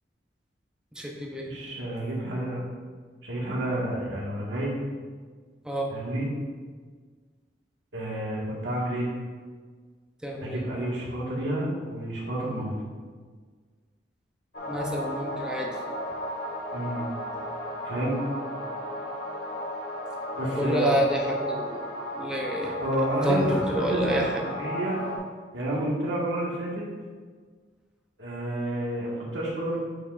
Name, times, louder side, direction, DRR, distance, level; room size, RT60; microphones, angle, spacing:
voice 1, 0.9-1.5 5.6-5.9 10.2-10.6 14.7-15.8 20.6-21.8 22.2-22.7 23.2-24.4, equal, 5° right, -1 dB, 0.7 m, -28 dB
voice 2, 1.5-2.6 3.2-4.8 5.9-6.3 7.9-9.1 10.4-12.7 16.7-17.0 17.8-18.2 20.4-20.9 22.8-25.0 25.5-26.9 28.2-29.8, right 1 dB, 90° right, -5 dB, 1.7 m, -30 dB
sound 1, 14.5-25.2, left 1 dB, 60° left, 1.3 m, -34 dB
8.7 x 5.2 x 2.5 m, 1.5 s
head